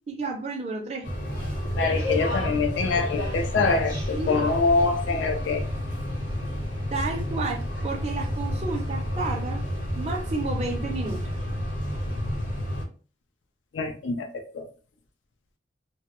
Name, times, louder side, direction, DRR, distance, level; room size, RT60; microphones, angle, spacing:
voice 1, 0.1-1.1 4.1-4.4 6.9-9.6 10.0-11.2, right 3 dB, 35° right, 1 dB, 0.4 m, -31 dB
sound 1, 1.0-12.8, left 1 dB, 45° left, 0.8 m, -30 dB
voice 2, 1.8-5.6 13.7-14.3 14.5-14.6, left 4 dB, 80° left, 5 dB, 0.4 m, -25 dB
2.1 x 2.0 x 2.9 m, 0.38 s
head